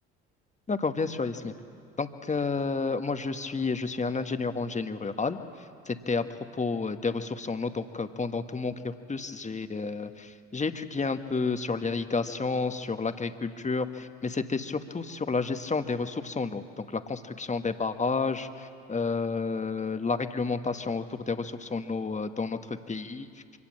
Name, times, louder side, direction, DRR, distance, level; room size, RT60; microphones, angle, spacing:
voice 1, 0.7-1.5 2.0-5.4 5.9-6.2 6.6-23.3, left 4 dB, 25° left, 8 dB, 1.3 m, -30 dB
24.5 x 18.0 x 7.6 m, 2.4 s
hypercardioid pair, 60°, 31 cm